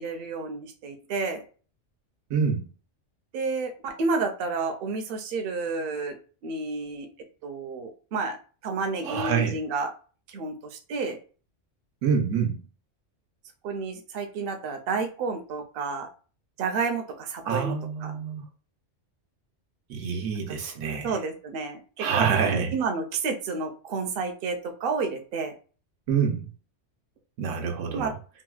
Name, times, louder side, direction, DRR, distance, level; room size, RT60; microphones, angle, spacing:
voice 1, 0.0-1.4 3.3-6.2 6.4-7.1 7.4-8.4 8.6-9.9 10.3-11.2 13.6-16.1 16.6-17.8 18.0-18.1 20.5-20.6 21.0-25.5 27.9-28.1, right 4 dB, 60° right, 5 dB, 0.7 m, -30 dB
voice 2, 2.3-2.6 9.0-9.6 12.0-12.6 17.5-18.4 19.9-21.1 22.0-22.7 26.1-26.5 27.4-28.2, right 6 dB, 85° right, 4 dB, 1.0 m, -26 dB
3.8 x 2.1 x 2.3 m, 0.37 s
omnidirectional pair, 1.3 m